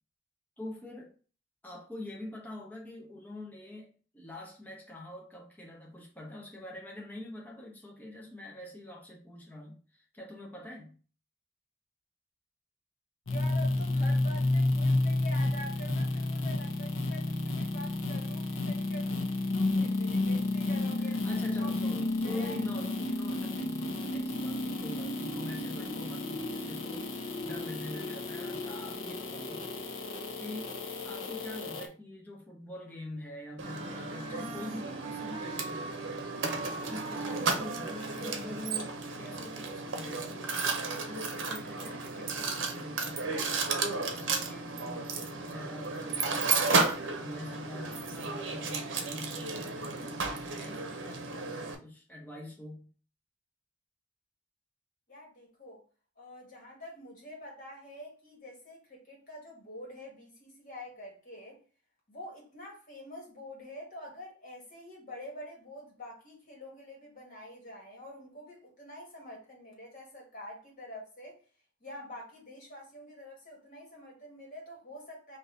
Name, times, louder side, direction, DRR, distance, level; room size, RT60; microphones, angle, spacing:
voice 1, 0.6-1.1 1.6-11.0 21.0-29.7 30.4-36.3 36.8-52.9, left 1 dB, 10° left, 0.9 m, -45 dB
sound 1, 13.3-31.9, left 2 dB, 90° left, 0.8 m, -31 dB
voice 2, 13.3-19.2 19.5-21.2 21.6-21.7 22.2-22.6 55.1-55.8 56.2-61.6 62.1-71.4 71.8-75.4, left 1 dB, 45° left, 1.8 m, -46 dB
Wind instrument woodwind instrument, 33.6-38.8, right 4 dB, 30° right, 0.6 m, -43 dB
Mechanisms, 33.6-51.7, right 4 dB, 70° right, 0.7 m, -33 dB
3.8 x 2.8 x 3.8 m
head